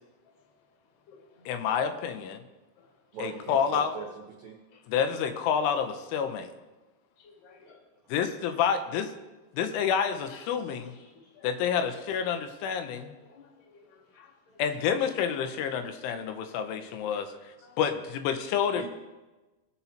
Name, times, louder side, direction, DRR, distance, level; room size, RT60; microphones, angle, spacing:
voice 1, 0.2-1.9 2.8-3.3 4.7-4.9 7.2-7.8 10.1-10.5 10.8-11.9 12.2-12.4 12.9-14.6 16.8-17.0 17.3-17.8, left 5 dB, 55° left, -1 dB, 3.2 m, -56 dB
voice 2, 1.5-2.4 3.2-4.0 4.9-6.5 8.1-9.1 9.5-10.9 11.4-13.1 14.6-17.3 17.8-18.8, left 7 dB, 90° left, 8 dB, 3.2 m, -28 dB
voice 3, 3.1-4.6 18.7-18.8, right 5 dB, 70° right, -2 dB, 2.2 m, -40 dB
19.5 x 7.0 x 2.9 m, 1.2 s
omnidirectional pair, 5.4 m